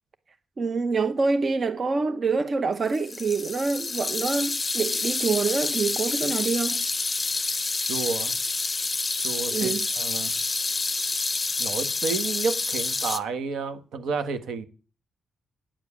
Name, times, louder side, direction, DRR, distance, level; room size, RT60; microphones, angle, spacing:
voice 1, 0.6-6.8 9.5-9.9, right 4 dB, 35° right, 0.8 m, -26 dB
sound 1, 2.9-13.2, left 3 dB, 20° left, 0.8 m, -28 dB
voice 2, 7.8-8.3 9.2-10.3 11.6-14.7, right 5 dB, 75° right, 1.5 m, -31 dB
9.7 x 7.2 x 8.6 m
cardioid pair, 130°, 0 cm